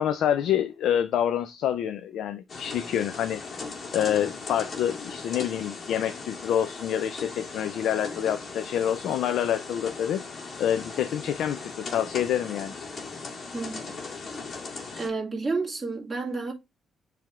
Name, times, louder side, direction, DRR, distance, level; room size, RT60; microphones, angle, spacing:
voice 1, 0.0-3.4 3.9-10.2 10.6-12.7, left 10 dB, 80° left, 0.5 m, -27 dB
sound 1, 2.5-15.1, left 4 dB, 50° left, 1.9 m, -38 dB
voice 2, 13.5-13.8 15.0-16.5, right 3 dB, 15° right, 2.3 m, -30 dB
7.6 x 3.4 x 3.6 m
cardioid pair, 90°, 0 cm